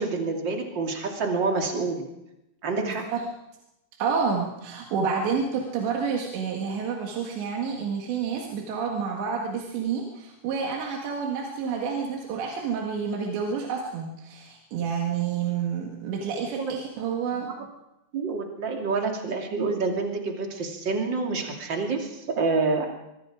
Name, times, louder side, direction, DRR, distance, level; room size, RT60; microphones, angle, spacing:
voice 1, 0.0-2.1 2.6-3.0 16.6-16.7 17.3-17.4 18.1-22.8, right 4 dB, 30° right, 2 dB, 2.8 m, -27 dB
voice 2, 2.8-3.2 4.0-17.5, right 6 dB, 85° right, 0 dB, 4.2 m, -29 dB
23.5 x 23.0 x 5.0 m, 0.88 s
omnidirectional pair, 5.0 m